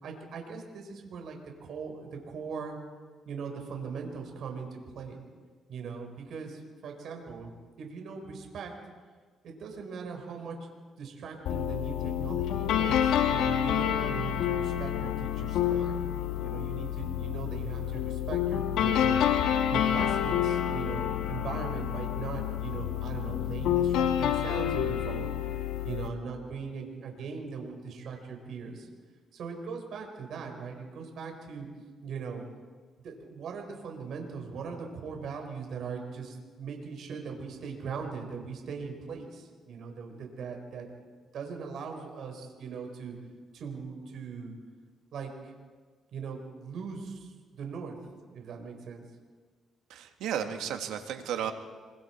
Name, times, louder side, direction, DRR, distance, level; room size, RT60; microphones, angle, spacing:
voice 1, 0.0-2.8 3.2-5.2 5.7-7.5 7.8-8.7 9.4-10.6 11.0-16.1 16.4-19.3 19.7-25.3 25.8-28.9 29.3-31.7 32.0-32.5 33.0-40.9 41.3-43.2 43.5-44.5 45.1-45.5 46.1-48.0 48.3-49.0, right 5 dB, 70° right, 3 dB, 4.5 m, -40 dB
sound 1, 11.5-26.1, left 10 dB, 85° left, 1.5 m, -28 dB
voice 2, 49.9-51.5, right 9 dB, 90° right, 5 dB, 1.9 m, -33 dB
26.5 x 24.0 x 4.5 m, 1.5 s
cardioid pair, 90°, 0 cm